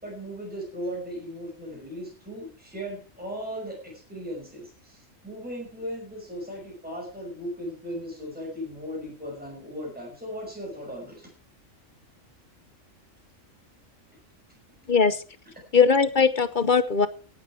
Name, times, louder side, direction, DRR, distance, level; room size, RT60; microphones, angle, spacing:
voice 1, 0.0-11.3, equal, 5° right, -1 dB, 5.7 m, -37 dB
voice 2, 15.7-17.1, left 5 dB, 40° left, 14 dB, 0.9 m, -20 dB
17.5 x 9.8 x 4.6 m, 0.38 s
omnidirectional pair, 1.3 m